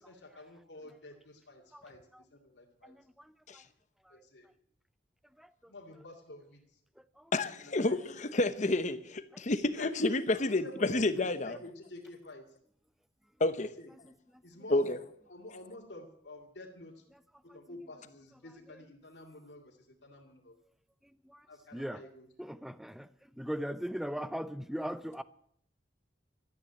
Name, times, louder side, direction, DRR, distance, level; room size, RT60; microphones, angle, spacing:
voice 1, 0.0-3.0 4.1-4.5 5.7-6.6 7.6-8.2 9.7-12.5 13.8-13.9 14.4-14.9 15.3-17.0 17.4-20.6 21.5-22.3, left 2 dB, 80° left, 2.3 m, -49 dB
voice 2, 7.3-11.6 13.4-13.7 14.7-15.0, left 2 dB, 45° left, 0.9 m, -30 dB
voice 3, 22.4-23.1 23.4-25.2, equal, ahead, 0.5 m, -38 dB
13.0 x 10.0 x 8.5 m
head